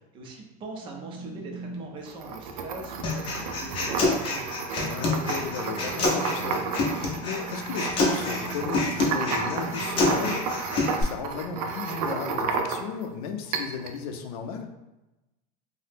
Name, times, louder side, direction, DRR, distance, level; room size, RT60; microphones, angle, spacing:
voice 1, 0.0-4.5, right 3 dB, 25° right, 1 dB, 0.4 m, -41 dB
sound 1, 0.7-10.3, right 2 dB, 55° right, 0.7 m, -43 dB
sound 2, 2.1-13.1 13.5-14.0, right 4 dB, 85° right, 0.4 m, -32 dB
Human voice, 3.0-11.0, left 2 dB, 30° left, 0.5 m, -27 dB
voice 2, 4.8-6.6 7.2-14.7, left 6 dB, 75° left, 6 dB, 0.5 m, -35 dB
2.7 x 2.0 x 3.4 m, 0.99 s
supercardioid pair, 165°, 19 cm